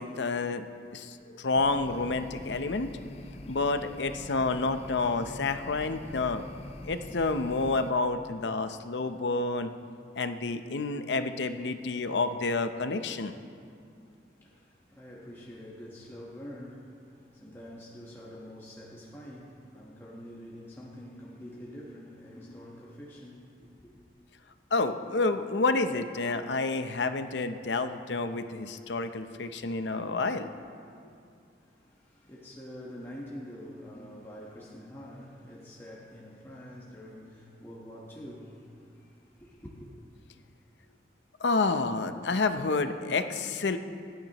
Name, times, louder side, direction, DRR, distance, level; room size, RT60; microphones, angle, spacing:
voice 1, 0.0-2.9 3.5-6.4 6.8-9.7 10.2-13.3 24.7-30.5 41.4-43.8, left 3 dB, 85° left, 0.7 m, -29 dB
sound 1, 1.5-7.9, left 1 dB, 35° left, 0.5 m, -44 dB
voice 2, 14.0-24.0 31.6-39.9, equal, 15° left, 1.2 m, -46 dB
26.5 x 9.4 x 3.0 m
head